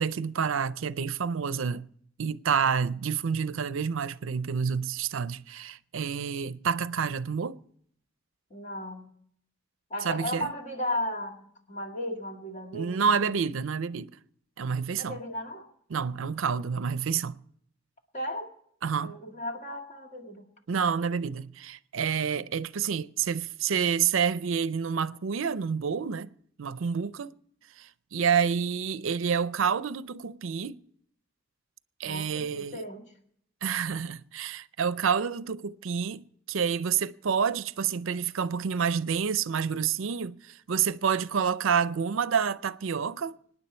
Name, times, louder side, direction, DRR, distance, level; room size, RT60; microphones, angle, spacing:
voice 1, 0.0-1.8 2.2-7.6 10.0-10.5 12.7-14.1 14.6-15.2 15.9-17.4 18.8-19.1 20.7-26.3 26.6-27.3 27.8-30.8 32.0-32.8 33.6-43.4, right 6 dB, 70° right, 0.5 m, -28 dB
voice 2, 8.5-9.1 9.9-13.1 14.9-15.7 18.1-18.5 19.0-20.4 32.0-33.1, left 1 dB, 40° left, 2.1 m, -35 dB
25.5 x 9.9 x 4.3 m
head